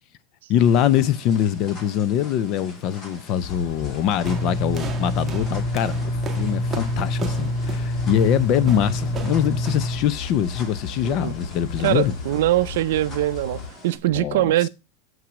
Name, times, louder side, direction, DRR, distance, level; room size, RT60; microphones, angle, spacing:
voice 1, 0.5-6.0 6.3-12.1 14.1-14.7, left 10 dB, 40° left, 0.5 m, -23 dB
sound 1, 0.6-14.0, left 2 dB, 25° left, 2.1 m, -44 dB
sound 2, 3.4-13.7, left 5 dB, 75° left, 1.5 m, -35 dB
sound 3, 4.2-10.0, equal, 15° right, 1.5 m, -26 dB
voice 2, 11.8-14.7, right 15 dB, 75° right, 0.4 m, -22 dB
7.4 x 5.8 x 6.1 m
supercardioid pair, 150°, 0 cm